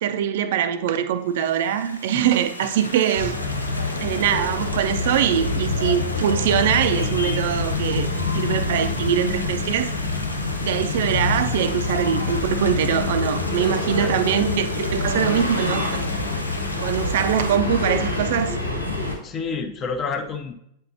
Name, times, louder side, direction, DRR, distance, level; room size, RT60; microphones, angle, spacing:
voice 1, 0.0-3.4 4.0-9.9 10.6-16.1 16.8-18.6, right 9 dB, 55° right, 10 dB, 0.5 m, -23 dB
Stream, 1.3-17.6, left 1 dB, 85° left, 0.6 m, -36 dB
sound 1, 3.2-19.2, left 3 dB, 90° right, 0.9 m, -26 dB
voice 2, 13.6-14.1 19.2-20.5, left 5 dB, 25° left, 5 dB, 0.8 m, -30 dB
8.6 x 4.4 x 2.7 m, 0.74 s
figure-of-eight pair, 90°, 0 cm